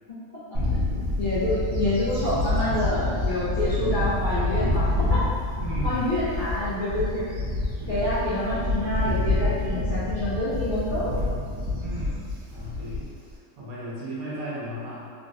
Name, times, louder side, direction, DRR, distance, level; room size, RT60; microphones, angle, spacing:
Bird / Wind, 0.5-13.3, left 2 dB, 55° right, 0.8 m, -27 dB
voice 1, 0.5-0.9 5.5-6.1 7.8-8.3 11.8-13.1 13.6-15.1, left 1 dB, 75° right, -7 dB, 1.1 m, -36 dB
voice 2, 1.2-5.2 5.8-7.2 7.9-11.2, left 1 dB, 45° left, -13 dB, 0.7 m, -27 dB
3.3 x 2.1 x 2.5 m, 2.2 s
omnidirectional pair, 1.6 m